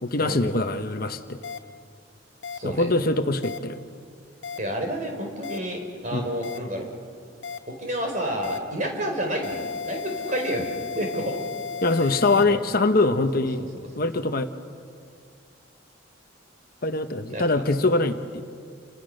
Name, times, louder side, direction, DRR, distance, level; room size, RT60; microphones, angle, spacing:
voice 1, 0.0-1.4 2.6-3.8 6.1-6.3 11.8-13.6 14.0-14.5 16.8-18.4, left 2 dB, 50° left, 8 dB, 1.0 m, -23 dB
sound 1, 1.4-1.6 2.4-2.6 3.4-3.6 4.4-4.6 5.4-5.6 6.4-6.6 7.4-7.6 8.4-8.6 9.4-12.4, left 6 dB, 75° left, 1.0 m, -34 dB
voice 2, 2.5-2.9 4.6-6.9 7.7-10.7 11.0-11.4 12.0-12.6 13.2-13.7 14.0-14.1 17.3-17.4, right 1 dB, 40° right, 2 dB, 4.2 m, -30 dB
29.0 x 24.5 x 6.5 m, 2.3 s
head